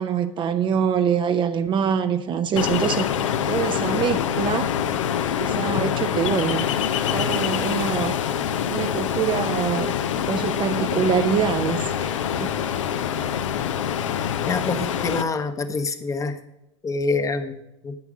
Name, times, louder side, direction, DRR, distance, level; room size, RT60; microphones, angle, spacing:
voice 1, 0.0-3.1 3.5-4.7 5.4-6.7 7.1-8.2 8.7-9.9 10.3-12.5, right 7 dB, 30° right, 0.6 m, -24 dB
Ocean, 2.6-15.2, left 9 dB, 70° left, 0.7 m, -25 dB
voice 2, 14.5-16.4 16.8-18.0, left 3 dB, 20° left, 0.9 m, -26 dB
8.6 x 8.2 x 5.0 m
hypercardioid pair, 90°, 16 cm